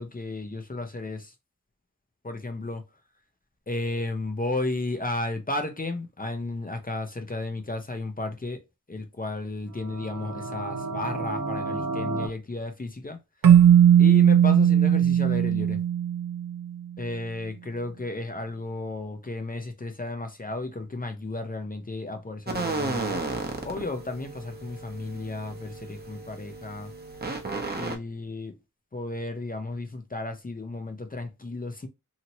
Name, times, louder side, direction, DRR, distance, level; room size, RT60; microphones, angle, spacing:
voice 1, 0.0-1.3 2.2-2.8 3.7-8.6 8.9-13.2 14.0-15.8 17.0-23.2 23.6-26.9 27.8-28.5 28.9-31.9, left 2 dB, 25° left, 0.6 m, -33 dB
sound 1, 9.7-12.3, right 3 dB, 60° right, 0.9 m, -32 dB
Keyboard (musical), 13.4-16.7, right 9 dB, 80° right, 0.5 m, -18 dB
sound 2, 22.5-28.0, right 3 dB, 30° right, 0.8 m, -34 dB
2.9 x 2.8 x 2.6 m
wide cardioid pair, 80°, 32 cm